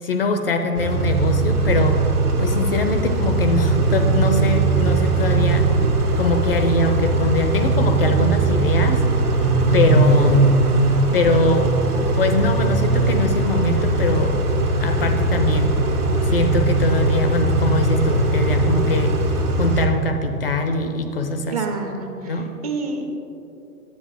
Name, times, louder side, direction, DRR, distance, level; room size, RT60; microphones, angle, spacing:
voice 1, 0.0-2.0 2.4-5.7 6.2-9.0 9.7-10.5 11.1-14.4 14.8-15.8 16.2-19.2 19.6-21.6 22.2-22.5, left 3 dB, 40° left, 7 dB, 0.5 m, -22 dB
Car / Idling / Accelerating revving vroom, 0.8-19.9, right 3 dB, 70° right, 1.7 m, -19 dB
voice 2, 21.5-23.2, right 3 dB, 25° right, 3 dB, 0.6 m, -28 dB
10.0 x 7.9 x 3.5 m, 2.8 s
figure-of-eight pair, 115°, 47 cm